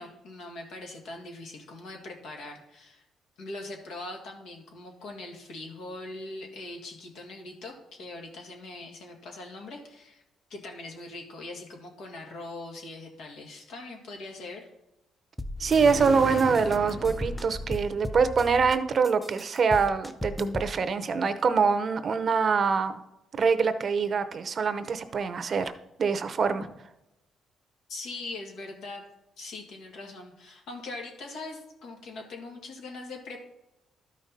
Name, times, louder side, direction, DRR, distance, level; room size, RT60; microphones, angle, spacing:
voice 1, 0.0-3.0 3.4-10.2 10.5-14.7 27.9-29.0 29.4-33.4, left 2 dB, 80° left, 1 dB, 2.1 m, -41 dB
sound 1, 15.4-16.1 16.4-18.8 19.0-20.7, left 1 dB, 5° left, 0.6 m, -36 dB
sound 2, 15.6-18.2, left 2 dB, 45° left, 1.7 m, -37 dB
voice 2, 15.6-23.0 23.3-25.7 26.0-26.6, right 5 dB, 50° right, 11 dB, 0.7 m, -24 dB
12.5 x 5.2 x 4.2 m, 0.90 s
cardioid pair, 90°, 0 cm